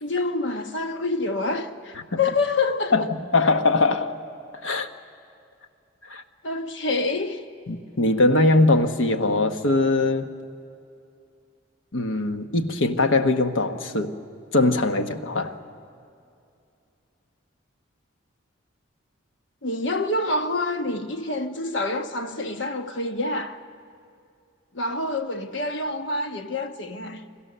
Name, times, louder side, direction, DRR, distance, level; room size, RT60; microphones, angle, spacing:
voice 1, 0.0-3.1 6.4-7.4 19.6-23.6 24.7-27.3, left 2 dB, 65° left, 1.2 m, -27 dB
voice 2, 2.9-4.1 4.6-4.9 6.1-6.2 7.7-10.3 11.9-14.1 14.5-15.5, left 2 dB, 85° left, 1.2 m, -21 dB
29.5 x 22.0 x 6.8 m
head